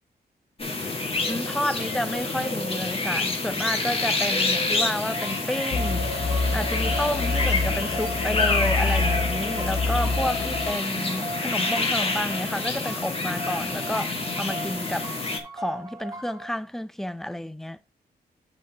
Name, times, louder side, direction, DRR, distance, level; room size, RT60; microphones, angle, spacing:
sound 1, 0.6-15.4, left 3 dB, 35° left, 1.7 m, -28 dB
voice 1, 1.3-6.1 6.5-15.1 15.5-17.8, equal, ahead, 0.5 m, -30 dB
sound 2, 5.0-16.5, right 2 dB, 20° right, 1.6 m, -39 dB
sound 3, 5.7-10.7, left 3 dB, 90° left, 1.1 m, -27 dB
8.5 x 5.2 x 3.5 m
cardioid pair, 85°, 17 cm